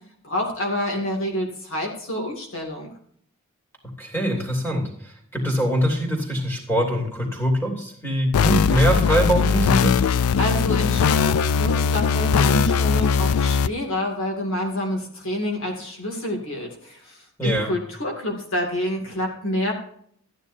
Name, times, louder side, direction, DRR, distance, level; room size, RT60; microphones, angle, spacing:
voice 1, 0.2-2.9 10.4-19.7, left 1 dB, 65° left, 1 dB, 2.3 m, -28 dB
voice 2, 4.0-10.0 17.4-17.7, right 1 dB, 10° left, 1 dB, 2.8 m, -23 dB
sound 1, 8.3-13.7, left 6 dB, 80° left, 0.4 m, -20 dB
14.5 x 9.9 x 2.7 m, 0.63 s
head